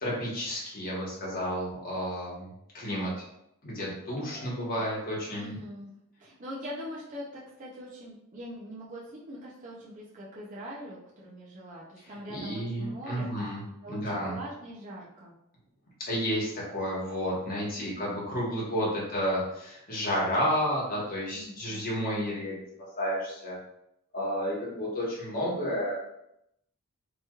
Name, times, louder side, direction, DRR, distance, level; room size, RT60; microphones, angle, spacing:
voice 1, 0.0-3.2 3.6-5.6 12.3-14.4 16.1-22.6 23.0-23.6 24.1-26.0, equal, 45° left, -5 dB, 1.1 m, -31 dB
voice 2, 4.3-4.8 5.4-5.9 6.2-13.5 13.8-15.3 17.8-18.2 21.3-21.8, equal, 35° right, -6 dB, 0.5 m, -43 dB
3.0 x 2.9 x 2.3 m, 0.80 s
head